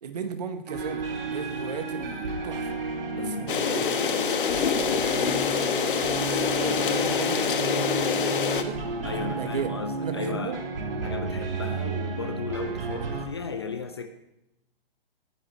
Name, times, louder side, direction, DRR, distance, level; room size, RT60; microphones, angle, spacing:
voice 1, 0.0-2.8 3.1-5.7 6.6-8.8 9.1-9.7 10.0-10.6, right 6 dB, 40° right, 8 dB, 1.3 m, -37 dB
sound 1, 0.7-13.3, right 3 dB, 65° right, 3.5 m, -32 dB
voice 2, 3.1-3.5 6.2-6.4 9.0-10.6 11.0-14.1, left 5 dB, 25° left, 9 dB, 0.5 m, -35 dB
sound 2, 3.5-8.6, left 7 dB, 60° left, 1.3 m, -26 dB
18.5 x 10.0 x 4.2 m, 0.90 s
hypercardioid pair, 175°, 30 cm